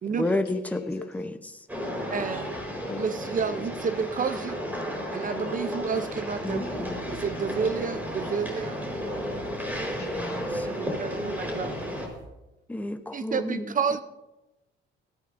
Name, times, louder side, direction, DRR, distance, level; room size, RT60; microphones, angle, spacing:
voice 1, 0.2-1.6 6.4-7.0 10.0-10.9 12.7-13.8, left 2 dB, 5° left, 8 dB, 0.8 m, -32 dB
voice 2, 0.7-1.1 2.8-3.0 9.0-11.5, left 5 dB, 55° left, 1 dB, 2.3 m, -46 dB
sound 1, 1.7-12.1, equal, 10° right, 4.5 m, -33 dB
voice 3, 2.1-2.6 3.0-4.6 5.1-6.7 7.1-8.8 10.4-11.6 13.1-14.0, right 6 dB, 40° right, 11 dB, 0.6 m, -30 dB
sound 2, 6.5-12.3, right 3 dB, 60° right, 3.8 m, -47 dB
18.0 x 13.5 x 2.6 m, 1.0 s
cardioid pair, 90°, 20 cm